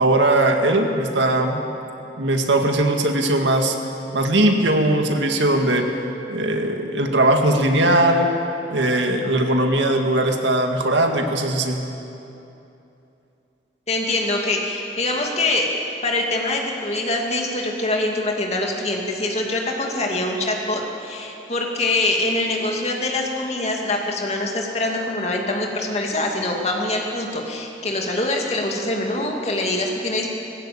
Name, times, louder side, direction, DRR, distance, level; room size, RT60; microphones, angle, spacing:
voice 1, 0.0-1.6 2.2-3.8 4.1-5.9 6.3-8.3 8.7-11.8, right 1 dB, 85° right, 3 dB, 2.0 m, -19 dB
voice 2, 13.9-15.7 16.0-30.3, left 2 dB, 35° left, 0 dB, 2.5 m, -24 dB
19.0 x 16.0 x 8.7 m, 2.9 s
head